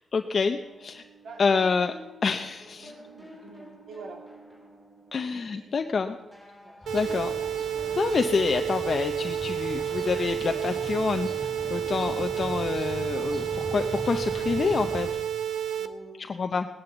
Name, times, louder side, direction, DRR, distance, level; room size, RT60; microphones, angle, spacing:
voice 1, 0.1-1.0 1.4-1.9 2.2-2.9 5.1-6.2 6.9-7.3 8.0-15.2 16.3-16.7, left 5 dB, 40° left, 6 dB, 0.7 m, -27 dB
sound 1, 0.6-5.8 6.2-13.9, right 1 dB, 15° right, 5.0 m, -50 dB
voice 2, 2.8-4.2 5.3-5.8 6.6-7.2 12.0-12.3 15.8-16.4, right 4 dB, 70° right, 2 dB, 2.9 m, -47 dB
sound 2, 6.8-15.1, left 1 dB, 10° left, 4.4 m, -40 dB
sound 3, 6.9-15.9, right 9 dB, 85° right, 1.0 m, -30 dB
18.0 x 11.0 x 7.2 m, 1.1 s
wide cardioid pair, 155°, 0 cm